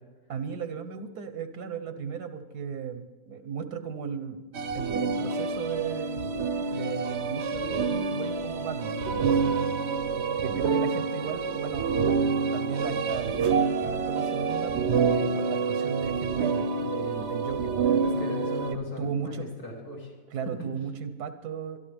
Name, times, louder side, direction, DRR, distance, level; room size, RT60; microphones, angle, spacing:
voice 1, 0.3-4.4 4.7-6.3 6.7-9.7 10.4-12.0 12.5-17.7 18.7-19.5 20.3-21.8, right 7 dB, 85° right, 9 dB, 1.4 m, -36 dB
sound 1, 4.5-18.7, right 5 dB, 55° right, 0.9 m, -27 dB
voice 2, 18.0-20.1, left 3 dB, 70° left, -3 dB, 3.5 m, -37 dB
24.5 x 12.0 x 3.5 m, 1.3 s
omnidirectional pair, 1.6 m